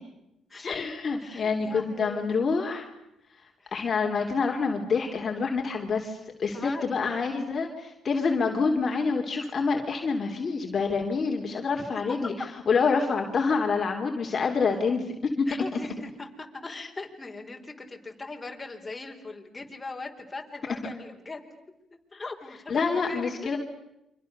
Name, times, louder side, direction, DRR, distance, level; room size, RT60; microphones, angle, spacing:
voice 1, 0.6-2.9 3.7-12.3 12.7-15.8 22.7-23.6, left 4 dB, 45° left, 2 dB, 3.1 m, -27 dB
voice 2, 1.2-2.2 3.6-3.7 6.5-6.9 15.5-21.5 22.1-23.5, left 3 dB, 20° left, 2 dB, 4.6 m, -40 dB
29.5 x 25.5 x 6.8 m, 0.87 s
cardioid pair, 90°, 0 cm